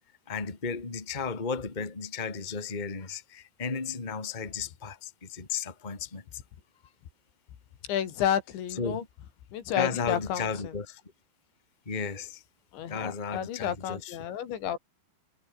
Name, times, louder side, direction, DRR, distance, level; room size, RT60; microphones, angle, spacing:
voice 1, 0.3-6.4 8.8-9.1 9.7-11.0 11.9-12.4 12.9-14.2, left 5 dB, 15° left, 1.8 m, -34 dB
voice 2, 7.9-9.0 9.5-10.7 12.7-14.8, left 10 dB, 80° left, 4.9 m, -31 dB
omnidirectional pair, 5.1 m